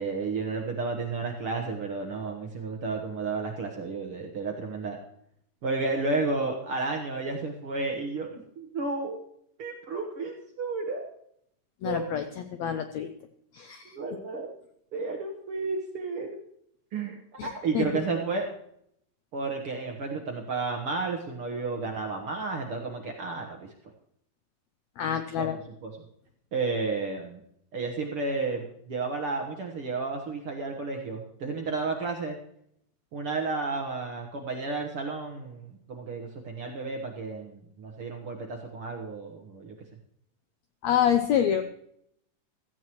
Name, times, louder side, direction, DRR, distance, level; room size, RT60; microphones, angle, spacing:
voice 1, 0.0-5.0 5.6-9.2 9.6-11.1 11.8-12.1 13.8-14.5 14.9-16.4 16.9-18.5 19.3-23.6 25.4-25.5 25.8-25.9 26.5-27.4 27.7-32.4 33.1-39.7, right 3 dB, 60° right, 2 dB, 1.5 m, -32 dB
voice 2, 11.8-13.1 13.5-14.0 17.4-17.9 25.0-25.6 40.8-41.6, left 9 dB, 80° left, 8 dB, 1.6 m, -27 dB
16.5 x 14.5 x 3.1 m, 0.71 s
omnidirectional pair, 3.9 m